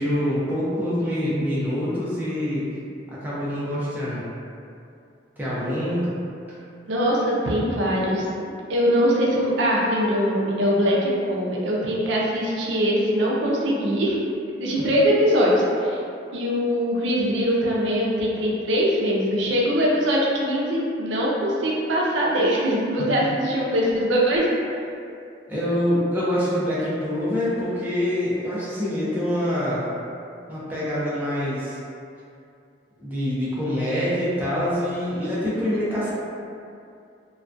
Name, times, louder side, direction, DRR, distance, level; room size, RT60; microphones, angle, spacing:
voice 1, 0.0-2.7 3.1-4.2 5.4-6.1 6.5-6.6 14.8-14.9 23.0-23.1 25.5-29.8 30.5-31.8 33.0-36.1, equal, 10° right, -9 dB, 0.4 m, -25 dB
voice 2, 6.9-8.3 8.7-14.2 14.6-16.0 16.3-24.5, equal, 80° right, -4 dB, 0.4 m, -22 dB
2.3 x 2.1 x 2.5 m, 2.5 s
head